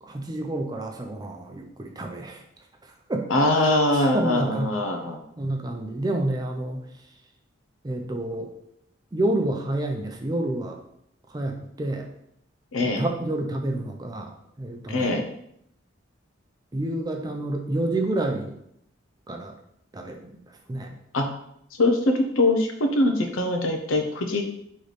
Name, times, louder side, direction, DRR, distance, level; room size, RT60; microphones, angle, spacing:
voice 1, 0.0-2.4 2.8-4.7 5.4-6.8 7.8-8.5 9.1-10.8 11.3-12.1 12.8-15.2 16.7-18.5 19.3-19.5 19.9-21.0, right 1 dB, 20° right, 3 dB, 0.4 m, -29 dB
voice 2, 3.3-5.2 12.7-13.0 14.9-15.2 21.1-21.3 21.8-24.4, left 2 dB, 90° left, 4 dB, 0.6 m, -22 dB
4.0 x 3.1 x 3.2 m, 0.73 s
head